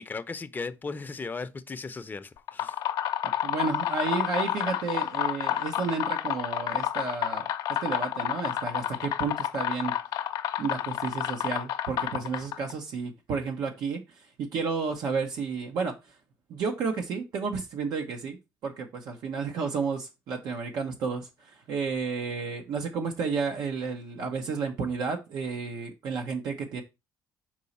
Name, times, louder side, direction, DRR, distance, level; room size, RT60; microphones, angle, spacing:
voice 1, 0.0-2.8, left 4 dB, 25° left, 0.6 m, -37 dB
sound 1, 2.4-12.7, left 11 dB, 75° left, 0.6 m, -30 dB
voice 2, 3.2-7.5 7.8-9.9 10.6-16.2 16.5-26.8, right 5 dB, 75° right, 0.9 m, -32 dB
5.0 x 4.6 x 4.1 m
cardioid pair, 90°, 7 cm